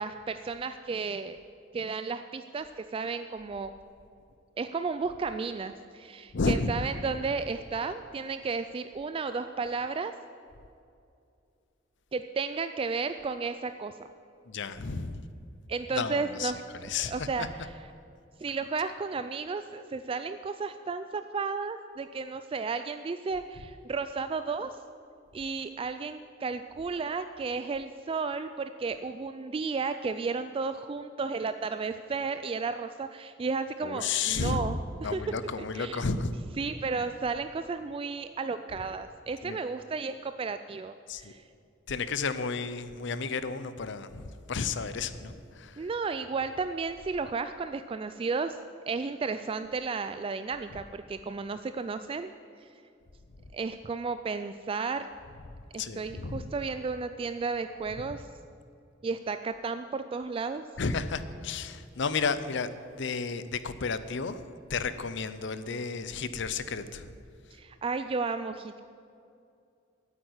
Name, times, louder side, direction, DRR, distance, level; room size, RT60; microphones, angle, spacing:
voice 1, 0.0-1.4 1.7-3.7 4.6-10.1 12.1-14.1 15.7-17.7 18.4-24.8 25.3-36.1 36.6-41.4 45.8-48.6 48.9-52.3 52.6-52.7 53.5-55.1 55.7-58.3 59.0-60.6 67.5-68.8, right 4 dB, 30° right, 10 dB, 0.3 m, -33 dB
voice 2, 6.3-6.7 14.5-15.2 15.9-16.5 16.8-17.3 33.8-34.7 35.0-36.3 39.4-39.6 41.1-41.3 41.9-45.9 55.8-56.5 60.8-62.7 63.0-64.4 64.7-67.1, left 4 dB, 65° left, 13 dB, 0.6 m, -32 dB
9.4 x 8.4 x 9.6 m, 2.5 s
head